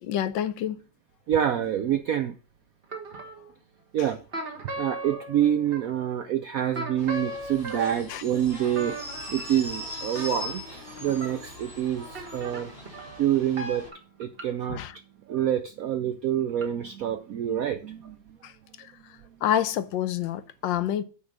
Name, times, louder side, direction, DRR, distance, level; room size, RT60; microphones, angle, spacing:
voice 1, 0.0-0.8 7.7-8.2 14.7-14.9 18.4-18.5 19.4-21.0, left 10 dB, 75° left, 1.3 m, -28 dB
voice 2, 1.3-2.4 3.9-4.2 4.8-9.0 9.3-12.7 13.2-13.9 14.2-14.8 15.3-18.2, right 10 dB, 75° right, 0.8 m, -27 dB
sound 1, 2.8-3.5 4.3-6.1 6.7-11.4 12.2-14.4 16.6-16.7, right 2 dB, 30° right, 1.5 m, -38 dB
sound 2, 7.0-13.9, left 1 dB, 25° left, 3.6 m, -40 dB
9.4 x 4.0 x 6.4 m
omnidirectional pair, 2.1 m